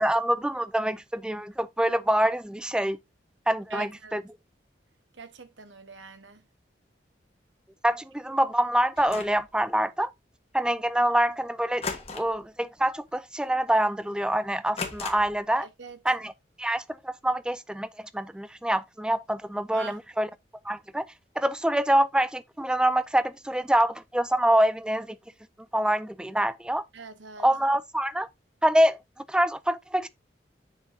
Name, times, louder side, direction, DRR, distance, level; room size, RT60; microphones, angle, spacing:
voice 1, 0.0-3.0 3.5-4.2 7.8-10.1 10.5-11.8 12.1-15.7 16.1-16.3 16.6-20.3 20.7-21.0 21.4-25.2 25.7-26.8 27.4-28.3 28.6-29.0 29.3-30.1, right 1 dB, 5° right, 0.4 m, -25 dB
voice 2, 3.7-4.2 5.1-6.4 15.6-16.0 19.7-20.0 26.9-27.5, right 4 dB, 90° right, 1.1 m, -43 dB
sound 1, 9.0-9.5 11.8-12.5 12.8-13.1 13.5-13.6 14.8-15.5, left 4 dB, 35° left, 1.3 m, -36 dB
7.5 x 6.3 x 2.7 m
head